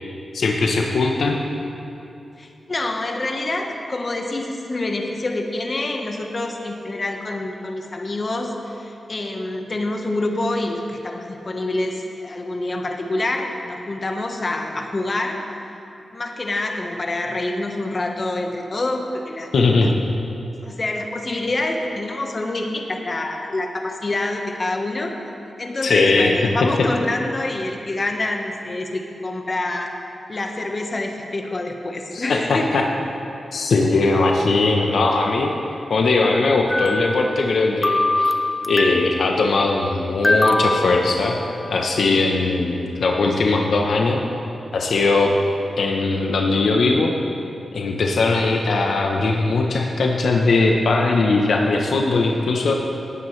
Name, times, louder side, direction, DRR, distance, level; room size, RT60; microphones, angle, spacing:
voice 1, 0.3-1.4 19.5-20.0 25.8-26.3 32.1-32.8 33.5-35.5 35.9-38.3 38.7-41.4 41.6-44.2 44.7-45.3 45.8-47.1 47.7-52.7, left 3 dB, 75° left, 1 dB, 0.9 m, -19 dB
voice 2, 2.4-15.4 16.1-19.9 20.6-25.1 25.6-29.9 30.3-32.8, left 2 dB, 40° left, 3 dB, 1.2 m, -26 dB
sound 1, 36.7-37.6 37.8-39.2 40.2-41.8, left 1 dB, 15° left, 0.6 m, -23 dB
18.0 x 9.2 x 3.3 m, 2.8 s
cardioid pair, 60°, 0 cm